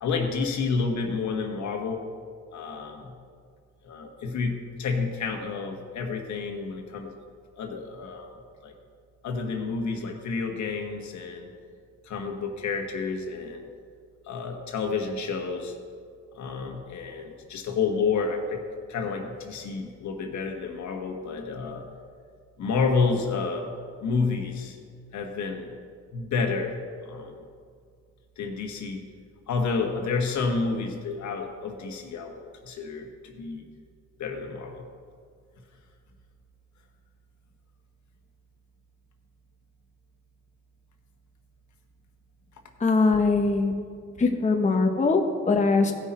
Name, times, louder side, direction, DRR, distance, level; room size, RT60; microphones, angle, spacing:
voice 1, 0.0-2.0 2.5-3.1 3.8-7.1 7.6-8.7 9.2-11.5 12.0-13.7 14.2-15.7 16.3-21.8 22.6-23.7 24.0-24.8 25.1-25.7 26.1-27.4 28.4-29.0 29.5-33.7 34.2-34.8, left 4 dB, 70° left, 3 dB, 1.4 m, -30 dB
voice 2, 42.8-43.7 44.2-45.9, left 3 dB, 25° left, 3 dB, 1.0 m, -22 dB
16.5 x 6.1 x 4.3 m, 2.1 s
cardioid pair, 90°, 30 cm